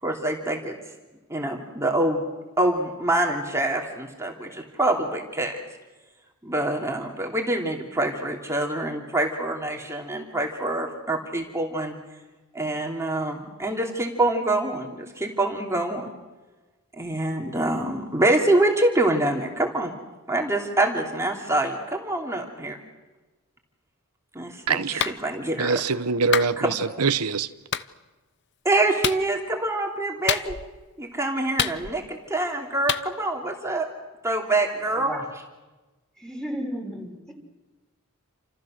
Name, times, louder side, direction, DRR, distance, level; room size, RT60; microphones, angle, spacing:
voice 1, 0.0-0.7 1.3-2.2 2.6-5.6 6.4-12.0 12.5-16.1 17.0-19.9 20.3-22.8 24.3-25.8 26.6-26.8 28.6-30.5 31.0-33.9 34.2-35.1, right 2 dB, 15° right, 3.0 m, -25 dB
voice 2, 24.7-25.0 25.6-27.5, right 5 dB, 90° right, 1.0 m, -24 dB
Clapping, 25.0-25.2 26.3-26.5 27.7-27.9 29.0-29.2 30.3-30.7 31.6-32.1 32.9-33.1, left 8 dB, 55° left, 0.9 m, -26 dB
voice 3, 34.9-35.3 36.2-37.3, equal, 5° left, 5.9 m, -33 dB
29.5 x 28.0 x 6.5 m
head